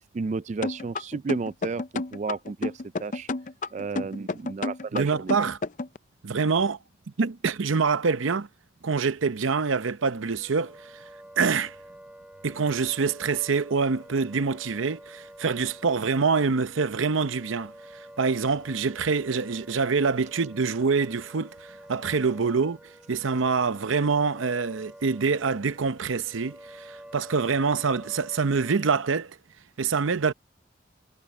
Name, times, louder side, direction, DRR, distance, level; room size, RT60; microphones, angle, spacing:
voice 1, 0.1-3.3 3.7-5.3, right 4 dB, 35° right, 0.3 m, -32 dB
sound 1, 0.6-6.0, left 3 dB, 40° left, 0.5 m, -30 dB
voice 2, 4.9-5.6 6.2-6.8 7.2-8.5 8.8-10.9 11.4-11.7 12.4-17.7 18.2-22.8 23.1-29.4 29.8-30.3, right 5 dB, 90° right, 0.7 m, -25 dB
Wind instrument woodwind instrument, 10.0-29.1, equal, 5° right, 2.4 m, -48 dB
head